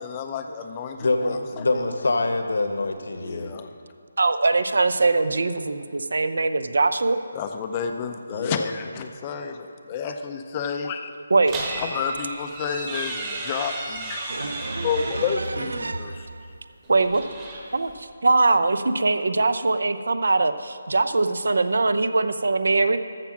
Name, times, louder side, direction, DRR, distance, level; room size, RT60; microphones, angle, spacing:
voice 1, 0.0-1.7 3.2-3.7 7.4-11.1 11.8-14.5 14.7-16.3, left 6 dB, 15° left, 6 dB, 0.5 m, -30 dB
voice 2, 1.0-3.5 8.3-8.7, left 2 dB, 75° left, 7 dB, 1.2 m, -25 dB
voice 3, 4.2-7.2 11.3-11.6 13.2-13.3 14.3-16.5 16.9-17.3 17.7-23.0, right 3 dB, 75° right, 11 dB, 0.7 m, -22 dB
sound 1, 11.5-15.5 16.8-18.0, right 2 dB, 15° right, 1.1 m, -34 dB
14.0 x 6.0 x 6.0 m, 2.4 s
hypercardioid pair, 175°, 0 cm